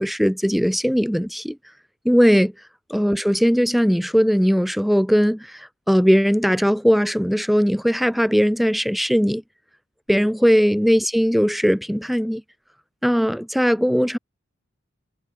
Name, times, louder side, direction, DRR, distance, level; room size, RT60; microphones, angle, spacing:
voice 1, 0.0-1.6 2.1-2.5 2.9-9.4 10.1-12.4 13.0-14.2, equal, ahead, 1.7 m, -19 dB
head